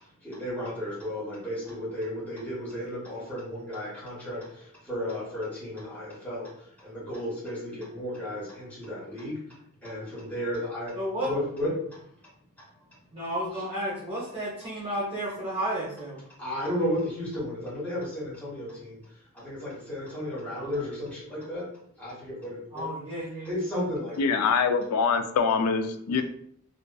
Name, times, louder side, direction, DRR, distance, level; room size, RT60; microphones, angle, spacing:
voice 1, 0.2-10.9 11.2-11.7 16.4-19.0 19.3-21.6 22.0-22.9 23.4-24.4, left 1 dB, 10° left, -9 dB, 1.0 m, -34 dB
voice 2, 10.9-11.3 13.1-16.2 20.6-20.8 22.7-23.6, right 1 dB, 25° right, -9 dB, 0.7 m, -32 dB
voice 3, 24.2-26.2, left 5 dB, 85° left, 9 dB, 0.3 m, -24 dB
2.4 x 2.4 x 2.2 m, 0.66 s
head